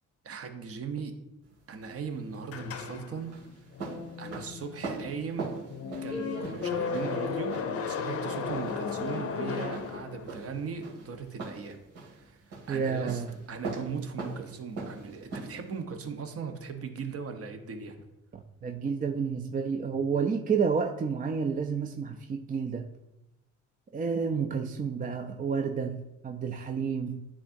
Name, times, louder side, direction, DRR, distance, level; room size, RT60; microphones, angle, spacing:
voice 1, 0.2-1.2 1.7-3.3 4.2-5.5 6.0-11.8 12.1-12.4 12.7-13.2 13.5-18.0, right 5 dB, 50° right, 6 dB, 0.9 m, -38 dB
sound 1, 1.4-15.8, right 3 dB, 80° right, 2.3 m, -42 dB
sound 2, 2.5-10.6, left 6 dB, 50° left, 0.6 m, -35 dB
voice 2, 12.7-13.3 18.3-22.9 23.9-27.3, right 6 dB, 30° right, 4 dB, 0.4 m, -30 dB
9.8 x 3.6 x 2.6 m, 0.91 s
cardioid pair, 90°, 30 cm